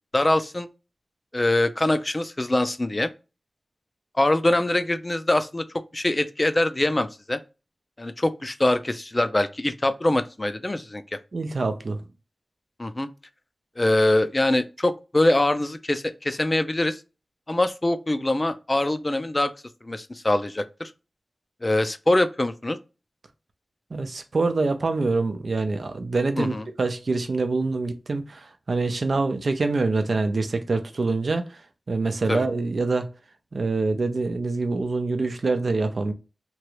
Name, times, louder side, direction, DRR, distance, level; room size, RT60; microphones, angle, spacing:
voice 1, 0.1-0.7 1.3-3.1 4.2-5.6 5.9-7.4 8.0-11.0 12.8-13.1 13.8-17.0 17.5-19.5 19.8-20.9 21.6-22.8 26.4-26.6 32.3-32.4, left 1 dB, 30° left, 0.4 m, -23 dB
voice 2, 11.3-12.0 23.9-31.6 31.9-33.1 33.5-36.1, right 3 dB, 70° right, 0.5 m, -25 dB
3.0 x 2.4 x 3.0 m
wide cardioid pair, 50°, 0 cm